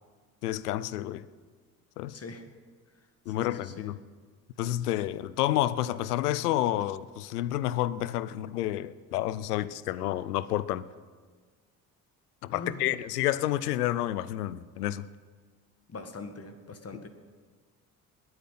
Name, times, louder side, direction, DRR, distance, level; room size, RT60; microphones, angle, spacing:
voice 1, 0.4-1.3 2.0-2.2 3.3-4.0 4.6-10.8 12.4-15.1, left 14 dB, 90° left, 0.5 m, -29 dB
voice 2, 2.1-2.5 3.3-3.9 12.5-12.8 15.9-17.1, left 3 dB, 30° left, 1.7 m, -42 dB
21.0 x 8.7 x 5.7 m
hypercardioid pair, 50°, 45 cm